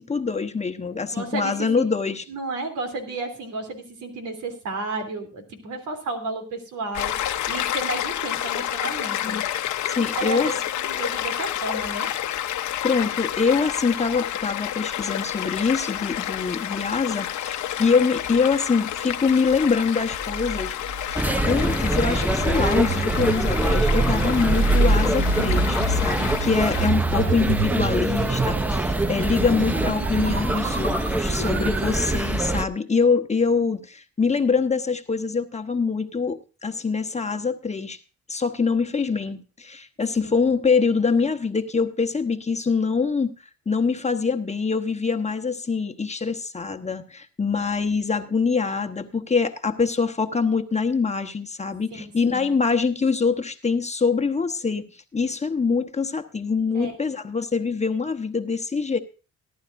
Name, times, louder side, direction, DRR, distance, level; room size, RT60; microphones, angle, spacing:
voice 1, 0.0-2.2 9.2-9.4 9.9-10.5 12.8-20.8 21.1-38.0 38.3-43.3 43.7-54.9 55.1-59.0, left 5 dB, 20° left, 8 dB, 1.0 m, -24 dB
voice 2, 1.1-1.9 2.3-9.4 10.0-12.1 31.6-32.0 40.2-40.3 51.9-52.5 56.7-56.9, right 3 dB, 85° right, 4 dB, 3.2 m, -33 dB
Stream, 6.9-26.9, left 11 dB, 75° left, 1.0 m, -29 dB
sound 1, 20.2-32.3, right 3 dB, 55° right, 2.4 m, -27 dB
sound 2, 21.2-32.6, right 2 dB, 5° right, 0.5 m, -25 dB
18.5 x 11.5 x 2.6 m, 0.34 s
cardioid pair, 90°, 30 cm